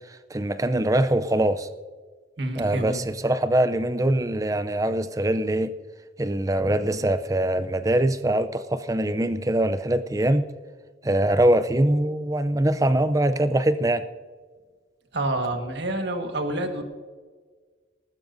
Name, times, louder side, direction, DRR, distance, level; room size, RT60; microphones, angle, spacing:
voice 1, 0.3-1.7 2.6-5.7 6.2-10.4 11.0-14.0, right 1 dB, 15° right, 11 dB, 0.5 m, -23 dB
voice 2, 2.4-3.0 6.6-6.7 15.1-16.8, right 1 dB, 65° right, 4 dB, 1.5 m, -28 dB
20.0 x 12.0 x 2.6 m, 1.5 s
head